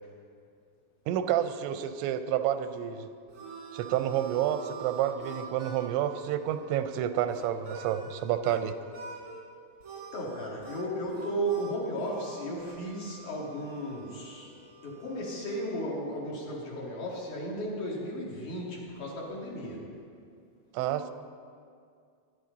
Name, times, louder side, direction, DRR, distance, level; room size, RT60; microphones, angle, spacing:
voice 1, 1.1-3.1 3.7-8.8 20.7-21.1, right 10 dB, 90° right, 10 dB, 3.0 m, -29 dB
Harmonica, 2.8-8.6 8.9-9.4 9.8-15.8, right 5 dB, 35° right, 1.5 m, -46 dB
voice 2, 9.9-14.5 14.8-19.9, right 1 dB, 50° left, -4 dB, 3.6 m, -35 dB
22.0 x 12.0 x 4.0 m, 2.3 s
omnidirectional pair, 5.1 m